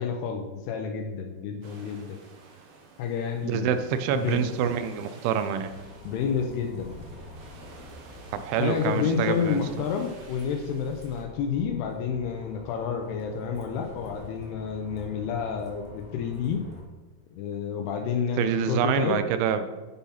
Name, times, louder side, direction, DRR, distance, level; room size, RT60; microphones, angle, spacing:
voice 1, 0.0-2.2 3.0-3.8 4.1-4.5 6.0-7.1 8.5-16.7 17.3-19.2, left 6 dB, 75° left, 4 dB, 2.5 m, -29 dB
sound 1, 1.6-11.2, right 4 dB, 70° right, 3.7 m, -51 dB
voice 2, 3.4-5.7 8.3-9.6 18.4-19.7, right 8 dB, 85° right, 10 dB, 3.1 m, -26 dB
Bus, 5.6-16.8, left 1 dB, 5° right, 1.3 m, -47 dB
11.0 x 5.6 x 5.8 m, 1.2 s
omnidirectional pair, 5.3 m